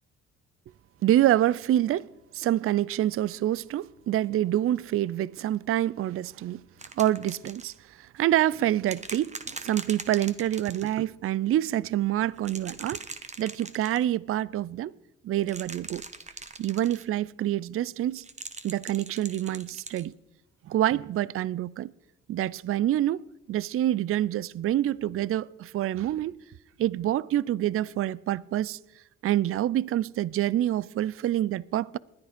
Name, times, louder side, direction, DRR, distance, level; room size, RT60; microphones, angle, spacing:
voice 1, 1.0-2.1 2.3-6.6 7.0-7.7 8.0-13.0 13.4-14.9 15.2-16.0 16.6-18.2 18.6-20.1 20.7-21.9 22.3-26.3 26.8-28.8 29.2-32.0, right 13 dB, 45° right, 0.4 m, -26 dB
sound 1, 6.8-7.8 8.9-11.0 12.4-14.0 15.4-17.0 18.2-20.0 21.2-21.3, right 3 dB, 25° right, 1.2 m, -41 dB
20.0 x 11.0 x 5.1 m
cardioid pair, 90°, 30 cm